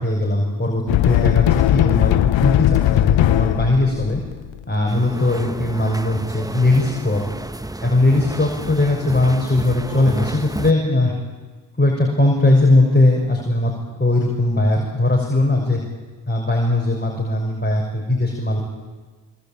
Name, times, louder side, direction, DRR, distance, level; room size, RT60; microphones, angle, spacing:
voice 1, 0.0-4.2 4.7-7.2 7.8-11.1 11.8-13.7 14.0-15.8 16.3-18.6, left 2 dB, 25° left, -1 dB, 6.4 m, -19 dB
sound 1, 0.9-4.6, left 14 dB, 90° left, 0.7 m, -18 dB
sound 2, 4.9-10.7, right 1 dB, 10° right, 1.2 m, -31 dB
25.0 x 22.0 x 9.1 m, 1.4 s
supercardioid pair, 45°, 44 cm